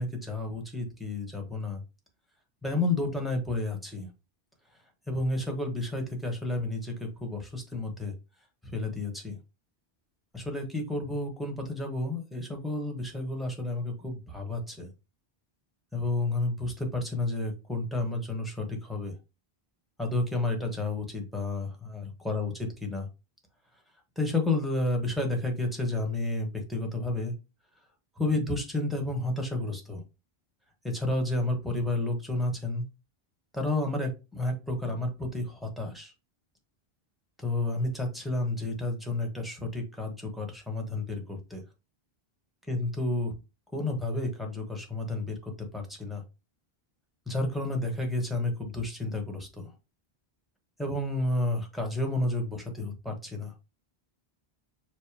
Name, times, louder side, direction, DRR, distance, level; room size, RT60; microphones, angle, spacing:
voice 1, 0.0-1.8 2.6-4.1 5.1-8.1 8.7-9.4 10.3-14.9 15.9-19.1 20.0-23.1 24.2-27.3 28.2-30.0 30.8-32.8 33.5-36.1 37.4-41.6 42.7-43.4 43.7-46.2 47.3-49.7 50.8-53.5, left 2 dB, ahead, 2 dB, 1.1 m, -31 dB
5.1 x 2.1 x 4.7 m, 0.28 s
omnidirectional pair, 1.0 m